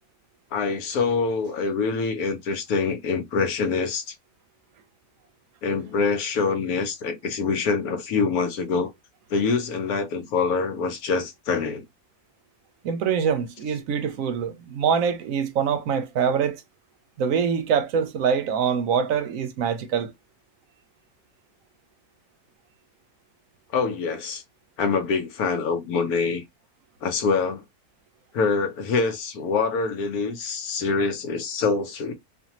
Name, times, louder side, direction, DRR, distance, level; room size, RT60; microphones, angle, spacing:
voice 1, 0.5-4.1 5.6-8.9 9.3-11.8 23.7-24.4 24.8-26.4 27.0-27.6 28.3-32.1, left 4 dB, 80° left, 1.1 m, -25 dB
voice 2, 12.8-16.6 17.2-20.1, right 7 dB, 70° right, 0.9 m, -24 dB
2.5 x 2.5 x 2.8 m
omnidirectional pair, 1.6 m